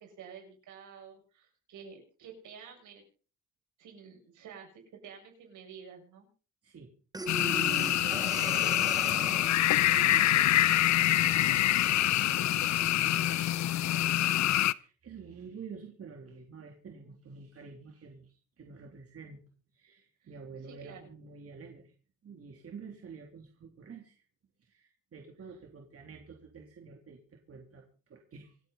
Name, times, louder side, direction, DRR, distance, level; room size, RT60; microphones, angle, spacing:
voice 1, 0.0-3.0 3.8-6.3 20.2-20.3 20.6-21.0, right 7 dB, 80° right, 2 dB, 7.3 m, -50 dB
Breathing, 7.1-9.7, right 2 dB, 15° right, 1.1 m, -39 dB
sound 1, 7.3-14.7, left 13 dB, 65° left, 0.7 m, -26 dB
voice 2, 7.4-11.7 12.2-19.4 19.7-21.9 22.2-24.2 24.6-28.6, right 5 dB, 50° right, 1 dB, 3.2 m, -48 dB
27.0 x 9.2 x 4.0 m, 0.39 s
cardioid pair, 90°, 30 cm